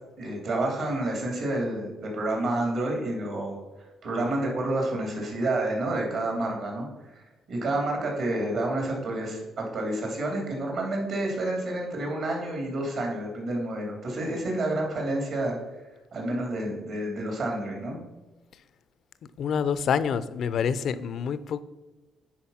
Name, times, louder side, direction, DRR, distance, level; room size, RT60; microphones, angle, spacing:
voice 1, 0.2-3.6 4.0-6.9 7.5-15.5 16.1-18.0, right 1 dB, 70° right, 0 dB, 3.1 m, -29 dB
voice 2, 19.4-21.6, left 7 dB, 65° left, 15 dB, 0.5 m, -27 dB
10.0 x 4.2 x 5.7 m, 1.2 s
cardioid pair, 90°, 0 cm